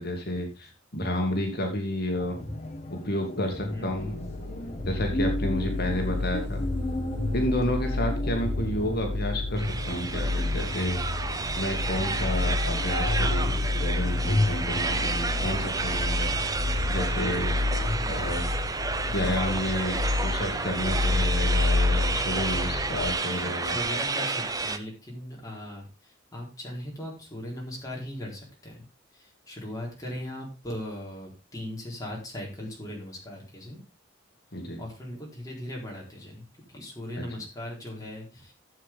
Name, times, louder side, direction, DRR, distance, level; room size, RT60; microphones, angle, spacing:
voice 1, 0.0-2.4 2.9-4.1 4.9-6.6 7.3-11.0 11.6-16.3 16.9-17.5 18.1-18.4 19.1-23.7 34.5-34.8, left 1 dB, 55° left, 3 dB, 2.1 m, -31 dB
sound 1, 2.1-18.0, left 1 dB, 35° left, 1.6 m, -34 dB
voice 2, 3.7-4.1 17.9-18.3 19.1-19.4 20.0-20.1 23.2-28.8 29.1-33.8 34.8-38.5, left 1 dB, 20° left, -2 dB, 4.2 m, -39 dB
sound 2, 3.9-23.1, left 2 dB, 65° right, 3.7 m, -30 dB
sound 3, 9.6-24.8, right 4 dB, 20° right, 0.7 m, -31 dB
12.0 x 7.6 x 3.6 m, 0.29 s
head